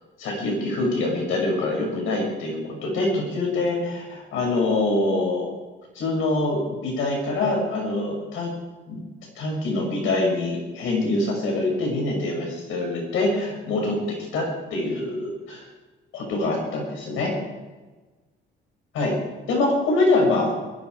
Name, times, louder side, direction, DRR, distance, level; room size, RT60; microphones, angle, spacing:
voice 1, 0.2-5.5 5.9-8.5 8.9-9.0 9.4-13.9 14.3-15.7 16.1-17.3 18.9-19.2 19.5-20.5, left 2 dB, 90° left, 0 dB, 6.3 m, -24 dB
23.0 x 12.0 x 4.8 m, 1.2 s
cardioid pair, 90°, 20 cm